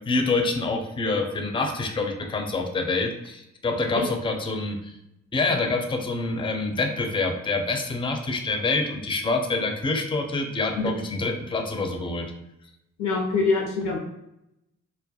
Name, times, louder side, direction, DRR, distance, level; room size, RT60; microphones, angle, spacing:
voice 1, 0.1-5.0 5.3-12.3, left 3 dB, 15° left, 2 dB, 0.4 m, -26 dB
voice 2, 13.0-14.0, left 4 dB, 85° left, 0 dB, 0.6 m, -24 dB
2.3 x 2.1 x 2.7 m, 0.86 s
cardioid pair, 55°, 31 cm